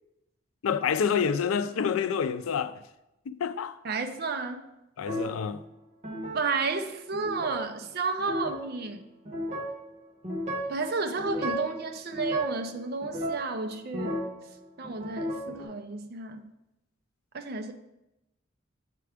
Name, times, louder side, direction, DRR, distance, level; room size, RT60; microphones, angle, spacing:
voice 1, 0.6-2.8 3.3-3.8 5.0-5.6, left 7 dB, 90° left, 0.4 m, -28 dB
voice 2, 3.8-4.6 6.3-9.0 10.7-14.2 14.8-16.4 17.3-17.7, right 4 dB, 50° right, 0.5 m, -32 dB
sound 1, 5.1-5.4 6.0-6.4 7.1-7.6 8.2-8.6 9.3-9.8 10.2-10.8 11.2-11.8 12.1-12.6 13.0-14.4 14.8-15.6, equal, 35° right, 1.1 m, -33 dB
7.5 x 4.7 x 3.4 m
head